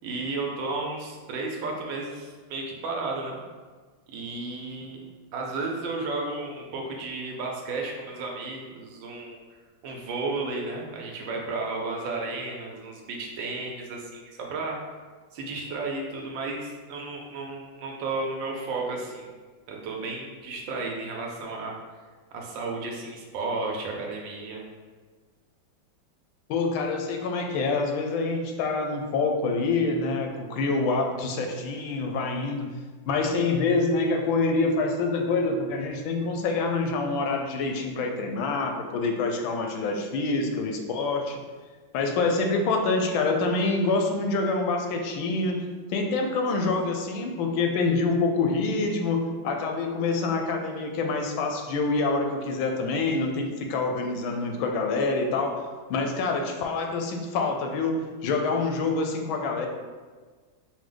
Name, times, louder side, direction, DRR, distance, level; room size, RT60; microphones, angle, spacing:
voice 1, 0.0-3.4 4.1-5.0 5.3-9.4 9.8-14.8 15.3-19.3 19.7-21.7 22.3-24.6, right 3 dB, 75° right, 0 dB, 1.3 m, -33 dB
voice 2, 26.5-32.7 33.1-41.4 41.9-45.6 45.9-49.2 49.4-55.6 55.9-57.9 58.2-59.7, left 3 dB, 85° left, 3 dB, 1.3 m, -26 dB
4.8 x 2.0 x 3.8 m, 1.5 s
omnidirectional pair, 2.1 m